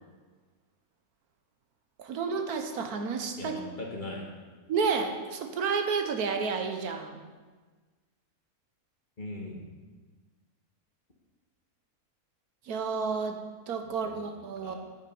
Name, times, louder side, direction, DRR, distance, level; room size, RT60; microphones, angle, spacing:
voice 1, 2.0-3.6 4.7-7.2 12.7-13.4 13.7-14.8, right 5 dB, 85° right, 5 dB, 1.5 m, -31 dB
voice 2, 3.4-4.3 9.2-9.6 13.8-14.3 14.6-14.8, left 2 dB, 35° left, -1 dB, 1.7 m, -40 dB
9.4 x 8.3 x 5.4 m, 1.4 s
omnidirectional pair, 1.5 m